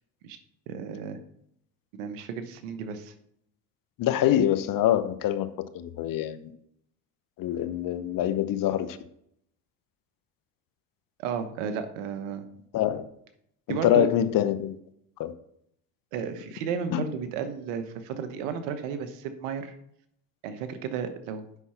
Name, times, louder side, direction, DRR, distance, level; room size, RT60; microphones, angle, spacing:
voice 1, 0.7-1.2 2.0-3.1 11.2-12.4 13.7-14.1 16.1-19.7 20.4-21.4, right 7 dB, 90° right, 10 dB, 1.1 m, -33 dB
voice 2, 4.0-5.5 5.7-6.4 7.4-9.0 12.7-13.0 13.7-14.8 15.2-15.3 16.9-17.0, left 11 dB, 60° left, 13 dB, 0.9 m, -25 dB
8.2 x 5.8 x 5.6 m, 0.73 s
supercardioid pair, 80°, 37 cm